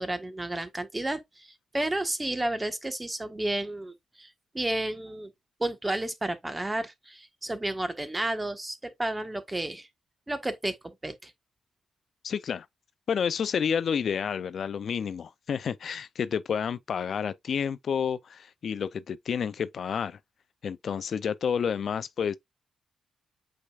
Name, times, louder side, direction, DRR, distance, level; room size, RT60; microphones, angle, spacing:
voice 1, 0.0-5.3 5.6-9.9 10.3-10.8 11.0-11.3, right 1 dB, 15° right, 1.4 m, -32 dB
voice 2, 12.2-12.7 13.1-20.2 20.6-22.4, left 7 dB, 60° left, 0.5 m, -30 dB
8.3 x 5.0 x 2.4 m
cardioid pair, 105°, 0 cm